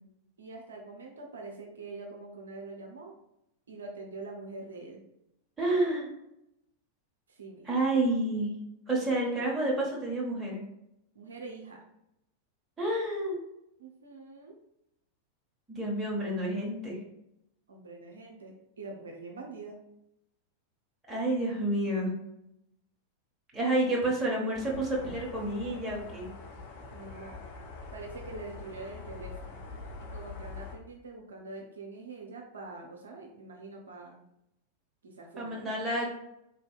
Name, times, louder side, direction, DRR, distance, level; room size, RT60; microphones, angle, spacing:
voice 1, 0.4-3.1 3.7-5.0 7.3-7.8 11.1-11.8 13.8-14.6 17.7-19.7 26.9-27.4 27.9-29.6 30.0-34.2 35.0-35.8, right 3 dB, 70° right, 1 dB, 0.5 m, -44 dB
voice 2, 5.6-6.1 7.6-8.5 8.9-10.6 12.8-13.4 15.7-17.0 21.1-22.1 23.5-26.3 35.4-36.1, right 1 dB, 15° right, -4 dB, 1.1 m, -29 dB
sound 1, 24.5-30.8, left 4 dB, 50° left, 0.6 m, -44 dB
3.7 x 2.6 x 2.4 m, 0.81 s
figure-of-eight pair, 90°, 0 cm